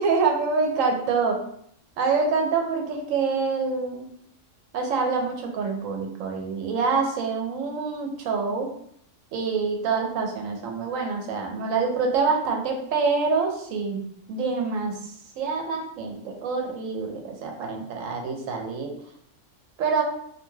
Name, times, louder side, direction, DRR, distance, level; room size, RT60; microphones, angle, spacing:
voice 1, 0.0-1.4 2.0-4.1 4.7-8.7 9.3-14.0 14.3-15.0 15.4-18.9 19.8-20.0, right 4 dB, 85° right, 2 dB, 1.0 m, -26 dB
2.5 x 2.2 x 3.1 m, 0.69 s
omnidirectional pair, 1.3 m